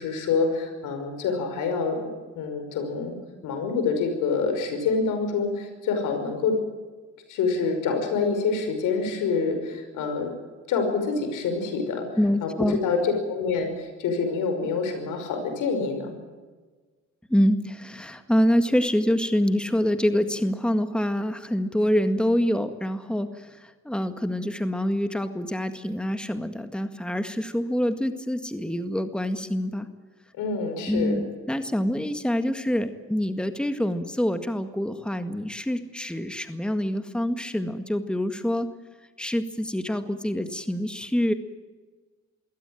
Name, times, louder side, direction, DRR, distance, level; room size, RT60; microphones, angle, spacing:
voice 1, 0.0-2.0 2.4-3.2 3.4-6.6 7.3-10.3 10.7-12.1 12.4-16.2 30.4-31.1, left 4 dB, 90° left, 6 dB, 5.7 m, -26 dB
voice 2, 12.2-12.8 17.3-29.9 30.9-38.7 39.2-41.3, equal, 5° left, 9 dB, 1.9 m, -26 dB
23.0 x 17.0 x 9.0 m, 1.3 s
cardioid pair, 90°, 30 cm